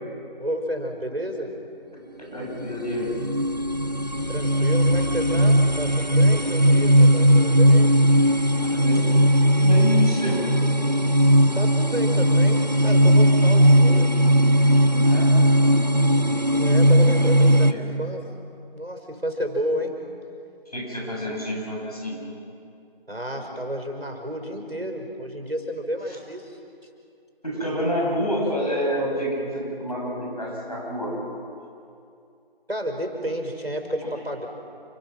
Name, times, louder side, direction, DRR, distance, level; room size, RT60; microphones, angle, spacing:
voice 1, 0.4-1.5 4.3-7.9 11.6-14.2 16.5-18.3 18.7-20.0 23.1-26.6 32.7-34.5, equal, 85° right, 4 dB, 5.3 m, -31 dB
voice 2, 2.3-3.2 8.6-9.2 9.6-10.4 15.0-15.3 17.1-17.9 20.7-22.2 26.1-26.2 27.4-31.2, equal, 40° left, -3 dB, 7.6 m, -28 dB
sound 1, 2.5-17.7, equal, 45° right, 0.9 m, -18 dB
29.0 x 21.5 x 6.1 m, 2.5 s
figure-of-eight pair, 180°, 30 cm